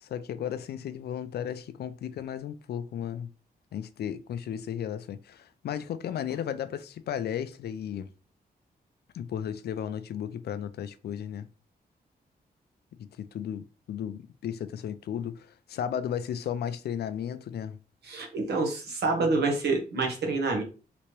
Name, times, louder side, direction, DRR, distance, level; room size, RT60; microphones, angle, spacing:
voice 1, 0.0-3.3 3.7-8.1 9.1-11.5 13.0-17.8, left 9 dB, 80° left, 0.4 m, -34 dB
voice 2, 18.0-20.6, right 3 dB, 90° right, 1.1 m, -27 dB
3.3 x 3.0 x 3.0 m
wide cardioid pair, 120°, 17 cm